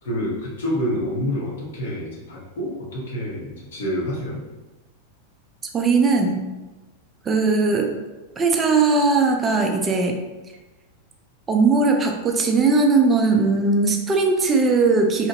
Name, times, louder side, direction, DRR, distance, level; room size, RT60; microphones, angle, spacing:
voice 1, 0.0-4.4, equal, 60° left, -5 dB, 1.0 m, -27 dB
voice 2, 5.7-6.4 7.3-8.0 8.4-10.1 11.5-15.3, right 3 dB, 20° right, 3 dB, 0.4 m, -19 dB
2.8 x 2.5 x 2.6 m, 1.1 s
figure-of-eight pair, 90°, 0 cm